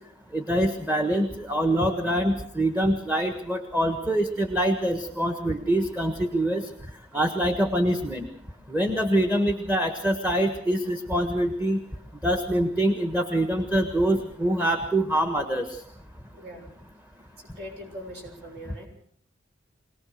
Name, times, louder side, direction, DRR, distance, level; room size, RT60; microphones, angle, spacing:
voice 1, 0.3-6.7 7.1-8.3 8.7-11.8 12.2-15.7, right 1 dB, 10° right, 6 dB, 1.5 m, -24 dB
voice 2, 16.3-16.7 17.5-18.9, equal, 55° right, 2 dB, 6.9 m, -41 dB
24.0 x 18.5 x 6.6 m, 0.62 s
head